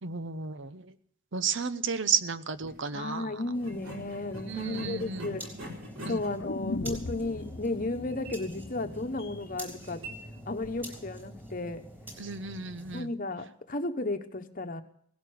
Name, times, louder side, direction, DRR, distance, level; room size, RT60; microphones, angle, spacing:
voice 1, 0.0-0.9 1.3-3.4 4.5-5.3 6.0-6.2 12.2-13.1, right 6 dB, 55° right, 13 dB, 0.8 m, -33 dB
sound 1, 2.5-2.8 3.6-11.1, equal, 75° right, 4.6 m, -45 dB
voice 2, 2.9-5.4 6.1-10.0 10.5-11.8 12.9-14.8, left 2 dB, 40° left, 7 dB, 1.2 m, -34 dB
sound 2, 3.5-13.0, right 1 dB, 10° right, 3.8 m, -46 dB
sound 3, 6.4-10.4 10.7-10.8, left 3 dB, 55° left, 0.7 m, -39 dB
17.5 x 11.5 x 6.5 m, 0.64 s
head